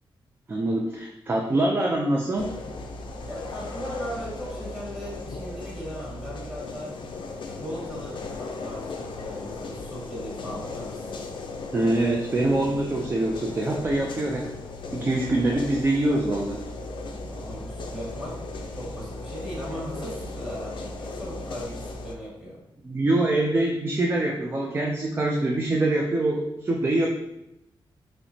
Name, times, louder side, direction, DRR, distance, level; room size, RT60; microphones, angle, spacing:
voice 1, 0.5-2.5 11.7-14.5 14.9-16.6 22.8-27.1, right 2 dB, 25° right, 0 dB, 0.4 m, -24 dB
sound 1, 2.4-22.1, left 3 dB, 65° left, 0.4 m, -37 dB
voice 2, 3.2-7.0 7.4-11.1 17.3-18.4 18.7-22.6, equal, ahead, -6 dB, 1.5 m, -38 dB
5.7 x 2.1 x 2.7 m, 0.87 s
wide cardioid pair, 155°, 9 cm